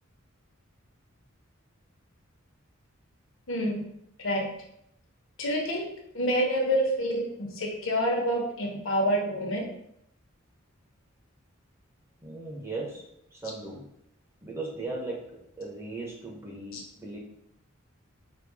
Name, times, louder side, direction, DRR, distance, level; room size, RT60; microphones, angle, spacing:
voice 1, 3.5-3.8 4.2-4.5 5.4-5.9 6.1-9.6 16.7-16.8, equal, 70° left, 0 dB, 1.0 m, -27 dB
voice 2, 12.2-13.9 14.4-17.2, right 2 dB, 15° right, -3 dB, 1.0 m, -38 dB
5.1 x 2.3 x 3.5 m, 0.74 s
head